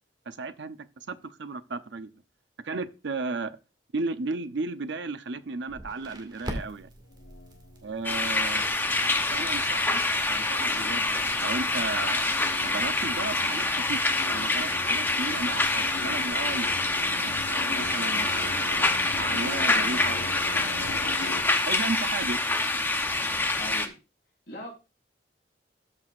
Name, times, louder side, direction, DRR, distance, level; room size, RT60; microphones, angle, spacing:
voice 1, 0.3-2.1 2.6-3.5 3.9-6.9 7.8-8.6 9.3-10.0 10.3-12.3 12.6-16.7 17.1-18.8 19.1-20.2 20.5-21.1 21.7-22.4, right 3 dB, 75° right, 0.7 m, -34 dB
Crackle, 5.7-12.2, equal, 25° right, 2.0 m, -44 dB
sound 1, 6.9-21.4, left 3 dB, 85° left, 0.9 m, -41 dB
sound 2, 8.0-23.9, left 2 dB, 10° left, 0.7 m, -26 dB
voice 2, 23.5-24.0 24.5-24.7, equal, 60° left, 4.8 m, -40 dB
13.5 x 6.1 x 2.5 m
head